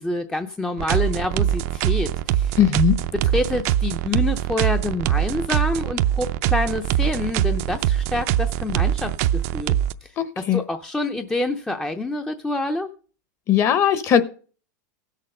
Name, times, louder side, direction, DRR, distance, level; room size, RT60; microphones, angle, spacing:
voice 1, 0.0-2.6 3.2-9.8 10.0-10.1 10.5-12.9, left 2 dB, 5° left, 6 dB, 0.6 m, -27 dB
sound 1, 0.8-9.9, right 11 dB, 50° right, 0.5 m, -23 dB
voice 2, 2.6-3.0 10.2-10.6 13.5-14.2, left 9 dB, 30° left, 13 dB, 0.9 m, -18 dB
16.5 x 6.6 x 5.3 m, 0.40 s
supercardioid pair, 145°, 10 cm